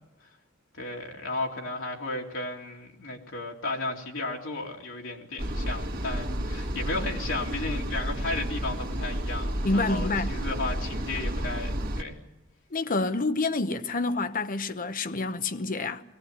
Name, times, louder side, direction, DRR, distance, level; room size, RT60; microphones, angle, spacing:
voice 1, 0.7-12.2, left 2 dB, 70° left, 2.8 m, -34 dB
sound 1, 5.4-12.0, equal, 50° right, 2.0 m, -31 dB
voice 2, 9.6-10.4 12.7-16.0, left 3 dB, 45° left, 1.0 m, -28 dB
22.0 x 17.5 x 9.6 m
head